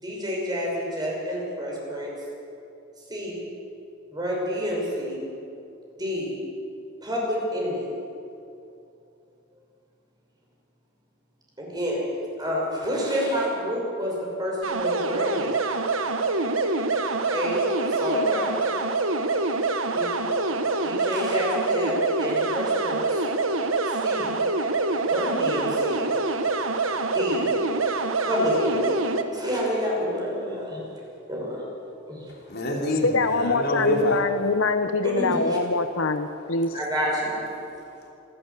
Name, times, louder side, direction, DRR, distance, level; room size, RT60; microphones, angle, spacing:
voice 1, 0.0-2.1 3.1-3.4 4.1-5.3 6.0-6.4 7.0-7.9 11.6-12.0 12.4-15.5 16.7-16.8 17.3-18.7 19.9-20.2 20.8-23.2 23.9-24.4 25.0-26.1 27.1-27.5 28.2-29.0 29.3-30.8 31.3-31.6 32.1-32.3 35.2-35.6 36.7-37.5, equal, 20° right, -3 dB, 5.9 m, -28 dB
sound 1, 14.6-29.2, right 3 dB, 80° right, 1.3 m, -25 dB
voice 2, 32.3-34.2 37.6-38.1, left 1 dB, 55° left, 0 dB, 3.4 m, -27 dB
voice 3, 33.0-36.7, left 3 dB, 75° left, 9 dB, 0.9 m, -24 dB
26.5 x 12.5 x 8.3 m, 2.6 s
head